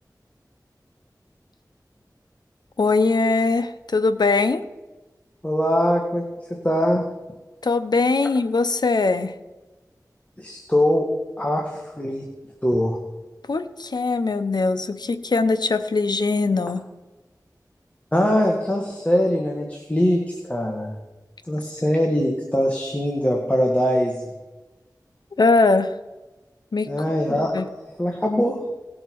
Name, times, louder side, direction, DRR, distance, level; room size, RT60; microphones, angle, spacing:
voice 1, 2.8-4.6 7.6-9.3 13.5-16.8 25.4-25.9 26.7-26.9 27.5-27.6, left 3 dB, 80° left, 11 dB, 0.7 m, -21 dB
voice 2, 5.4-6.2 6.6-7.0 10.4-11.1 11.4-12.2 12.6-13.0 18.1-20.9 21.5-24.3 26.9-27.5 28.0-28.5, equal, 20° left, 0 dB, 1.6 m, -22 dB
18.5 x 6.5 x 4.6 m, 1.2 s
wide cardioid pair, 50°, 7 cm